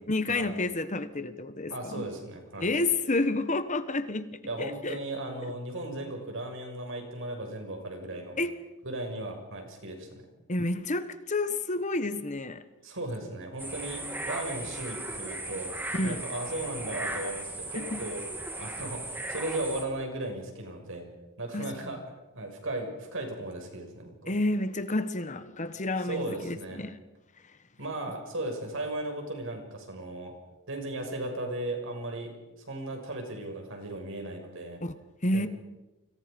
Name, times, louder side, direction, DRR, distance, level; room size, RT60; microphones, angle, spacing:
voice 1, 0.1-2.1 2.6-4.3 4.6-5.0 8.4-8.5 10.5-12.6 15.9-16.2 17.7-18.0 21.5-21.7 24.3-27.0 34.8-34.9 35.2-35.5, left 2 dB, 35° left, 1.3 m, -30 dB
voice 2, 1.7-2.7 4.4-8.4 8.8-10.2 12.8-15.7 16.0-18.2 18.6-21.1 21.4-22.0 22.3-24.3 26.0-26.8 27.8-30.3 30.7-32.3 32.7-34.8 35.3-35.5, right 1 dB, 60° right, 6.6 m, -36 dB
sound 1, 13.6-19.8, right 1 dB, 10° right, 3.1 m, -37 dB
29.5 x 26.0 x 5.3 m
head